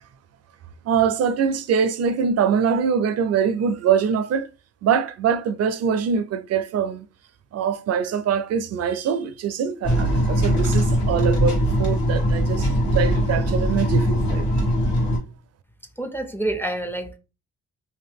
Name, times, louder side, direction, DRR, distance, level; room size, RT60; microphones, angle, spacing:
voice 1, 0.9-4.5 4.8-7.1 7.5-14.4, right 7 dB, 55° right, 0.4 m, -23 dB
sound 1, 9.8-15.2, equal, 70° left, 1.5 m, -21 dB
voice 2, 16.0-17.2, right 1 dB, 5° left, 0.4 m, -27 dB
2.7 x 2.2 x 3.4 m
cardioid pair, 90°, 30 cm